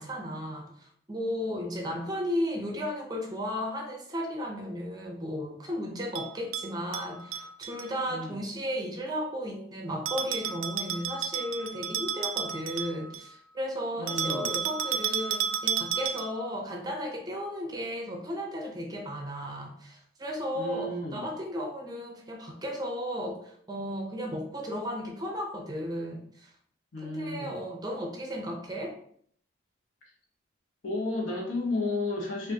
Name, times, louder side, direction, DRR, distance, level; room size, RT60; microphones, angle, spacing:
voice 1, 0.0-26.5 27.0-28.9, equal, 20° right, 1 dB, 0.5 m, -34 dB
Bell, 6.1-7.9 10.1-13.3 14.1-16.5, right 8 dB, 85° right, 0.3 m, -32 dB
voice 2, 8.1-8.4 14.0-14.5 20.6-21.2 26.9-27.6 30.8-32.5, left 2 dB, 85° left, -1 dB, 1.0 m, -32 dB
4.9 x 2.5 x 2.7 m, 0.63 s
head